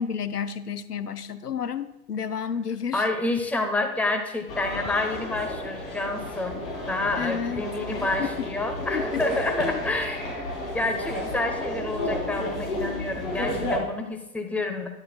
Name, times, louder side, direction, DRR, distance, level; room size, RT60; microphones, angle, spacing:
voice 1, 0.0-3.1 7.2-8.5 8.9-9.2 9.5-9.8, left 7 dB, 90° left, 13 dB, 0.5 m, -31 dB
voice 2, 2.9-6.6 6.9-10.3 10.7-14.9, left 2 dB, 5° left, 4 dB, 0.8 m, -28 dB
American Department Store - main shop floor, 4.5-13.8, left 1 dB, 65° left, 3.3 m, -32 dB
11.0 x 10.5 x 2.3 m, 0.95 s
figure-of-eight pair, 90°, 46 cm